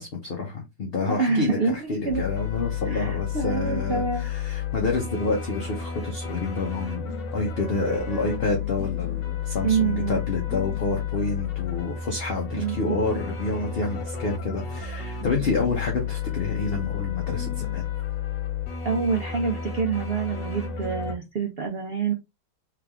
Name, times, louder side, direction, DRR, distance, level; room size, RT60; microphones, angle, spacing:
voice 1, 0.0-17.9, left 3 dB, 40° left, 0.9 m, -29 dB
voice 2, 1.1-2.2 2.9-4.3 9.6-10.2 12.5-13.0 18.8-22.1, right 5 dB, 75° right, 0.5 m, -26 dB
sound 1, 2.1-21.1, left 8 dB, 75° left, 1.6 m, -31 dB
3.6 x 3.3 x 3.5 m
omnidirectional pair, 1.9 m